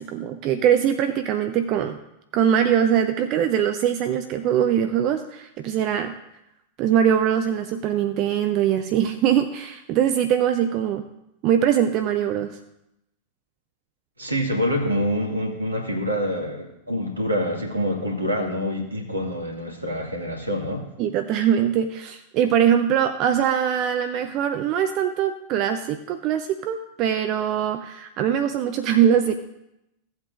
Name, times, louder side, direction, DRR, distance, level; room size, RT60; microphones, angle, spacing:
voice 1, 0.0-2.0 2.3-6.1 6.8-11.0 11.4-12.6 21.0-29.3, right 9 dB, 40° right, 8 dB, 0.6 m, -22 dB
voice 2, 14.2-20.9, equal, 80° right, 1 dB, 2.0 m, -26 dB
16.0 x 8.0 x 2.6 m, 0.86 s
figure-of-eight pair, 90°, 0 cm